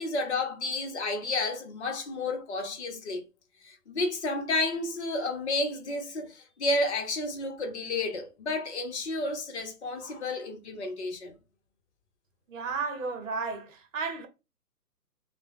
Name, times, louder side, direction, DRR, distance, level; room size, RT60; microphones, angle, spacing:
voice 1, 0.0-3.2 3.6-11.4, left 2 dB, 45° left, 0.9 m, -31 dB
voice 2, 12.5-14.3, right 4 dB, 50° right, 0.9 m, -33 dB
3.1 x 2.2 x 3.6 m
hypercardioid pair, 160°, 48 cm